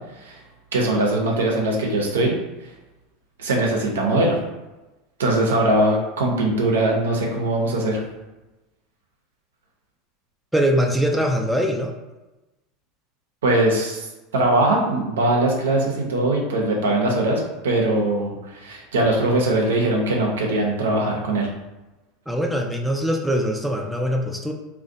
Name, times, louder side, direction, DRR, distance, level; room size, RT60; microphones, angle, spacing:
voice 1, 0.7-2.3 3.4-4.4 5.2-8.0 13.4-14.1 14.3-21.5, right 2 dB, 85° right, 0 dB, 0.5 m, -21 dB
voice 2, 10.5-11.9 22.3-24.5, equal, 5° right, 2 dB, 0.3 m, -22 dB
2.4 x 2.1 x 2.6 m, 1.1 s
hypercardioid pair, 85°, 0 cm